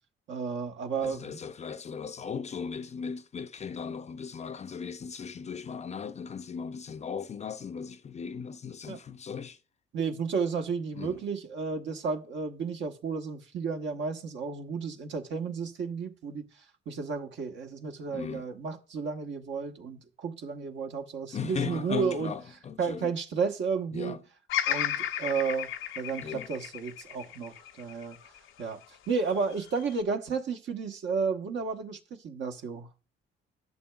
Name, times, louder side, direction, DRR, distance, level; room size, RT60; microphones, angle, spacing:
voice 1, 0.3-1.4 8.9-9.0 9.9-16.5 16.9-22.3 22.8-24.2 24.7-25.7 26.0-28.2 28.6-32.9, right 5 dB, 65° right, 1.1 m, -32 dB
voice 2, 1.0-9.6 10.9-11.2 18.1-18.4 21.3-23.1 23.9-24.2 26.2-26.5, left 6 dB, 35° left, 0.5 m, -37 dB
Bird vocalization bird call bird song, 24.5-28.7 29.3-30.0, left 10 dB, 85° left, 0.6 m, -34 dB
11.0 x 6.7 x 2.3 m
cardioid pair, 90°, 20 cm